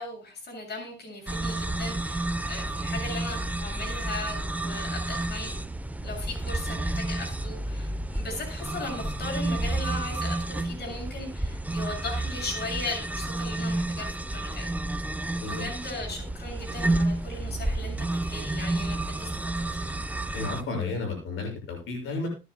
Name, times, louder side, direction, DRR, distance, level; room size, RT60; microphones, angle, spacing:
voice 1, 0.0-5.5 6.0-14.7 15.4-19.9, left 2 dB, 55° left, 2 dB, 7.0 m, -38 dB
sound 1, 1.3-20.6, right 2 dB, 5° right, 0.8 m, -30 dB
voice 2, 20.3-22.3, left 3 dB, 85° left, 2 dB, 6.5 m, -32 dB
22.5 x 9.7 x 2.3 m, 0.28 s
cardioid pair, 90°, 20 cm